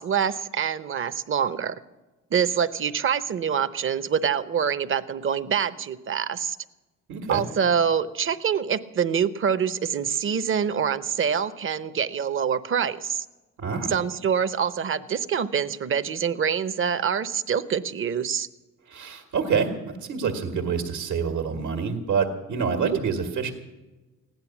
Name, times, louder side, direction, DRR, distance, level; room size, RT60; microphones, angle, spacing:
voice 1, 0.0-1.7 2.3-6.6 7.3-13.3 13.9-18.5 22.8-23.0, right 7 dB, 45° right, 13 dB, 0.9 m, -25 dB
voice 2, 7.1-7.4 13.6-13.9 18.9-23.5, right 6 dB, 75° right, 3 dB, 1.8 m, -27 dB
16.0 x 10.5 x 7.2 m, 1.1 s
cardioid pair, 90°, 30 cm